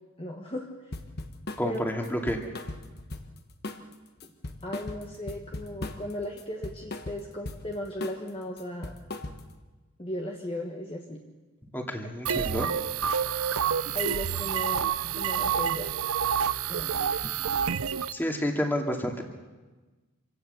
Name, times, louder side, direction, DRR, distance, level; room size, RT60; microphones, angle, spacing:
voice 1, 0.2-0.7 1.6-1.8 4.2-4.3 4.6-8.9 10.0-11.2 13.9-15.9 16.7-17.3, left 1 dB, 25° left, 0 dB, 1.5 m, -36 dB
sound 1, 0.9-1.7 2.0-3.4 3.6-3.9 4.2-6.1 6.4-7.7 8.0-8.3 8.6-9.6, left 2 dB, 50° left, 1.3 m, -38 dB
voice 2, 1.6-2.4 11.7-12.7 18.1-19.2, equal, 10° left, 2 dB, 2.3 m, -29 dB
sound 2, 12.3-18.1, right 8 dB, 85° right, 0.7 m, -28 dB
26.0 x 17.0 x 6.9 m, 1.2 s
head